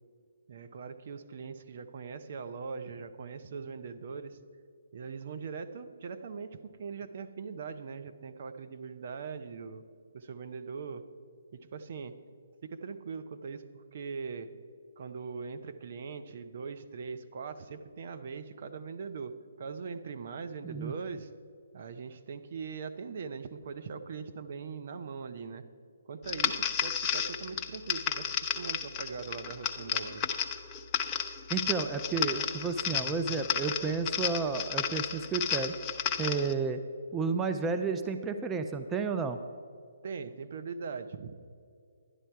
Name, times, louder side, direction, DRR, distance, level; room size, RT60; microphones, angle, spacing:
voice 1, 0.5-4.4 4.9-9.8 10.1-11.0 11.5-12.1 12.6-14.5 15.0-19.3 19.6-21.3 21.7-25.6 26.1-30.3 40.0-41.4, right 5 dB, 50° right, 8 dB, 0.7 m, -41 dB
sound 1, 26.3-36.5, left 7 dB, 25° left, 0.6 m, -33 dB
voice 2, 31.5-35.7 36.2-36.8 37.1-39.4, right 5 dB, 15° right, 7 dB, 0.5 m, -31 dB
11.0 x 11.0 x 4.6 m, 2.4 s
figure-of-eight pair, 140°, 0 cm